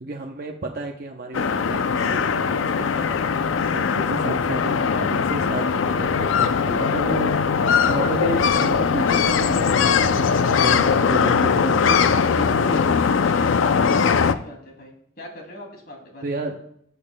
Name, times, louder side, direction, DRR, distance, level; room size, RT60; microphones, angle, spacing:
voice 1, 0.0-3.2 3.7-7.4 7.9-13.0 16.2-16.7, right 2 dB, 50° right, 1 dB, 0.7 m, -31 dB
sound 1, 1.3-14.3, left 6 dB, 80° left, 0.4 m, -20 dB
voice 2, 14.3-16.4, left 1 dB, 50° left, 1 dB, 2.5 m, -42 dB
15.5 x 6.8 x 2.2 m, 0.71 s
head